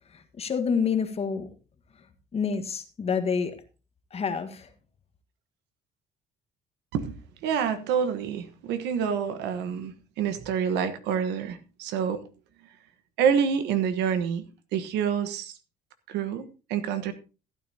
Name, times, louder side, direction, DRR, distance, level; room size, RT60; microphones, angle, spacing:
voice 1, 0.1-1.5 2.3-3.6 4.1-4.7, left 6 dB, 35° left, 1.5 m, -28 dB
voice 2, 7.4-12.2 13.2-14.4 14.7-15.6 16.1-17.1, right 7 dB, 85° right, 1.2 m, -27 dB
15.0 x 9.4 x 2.8 m
cardioid pair, 110°, 17 cm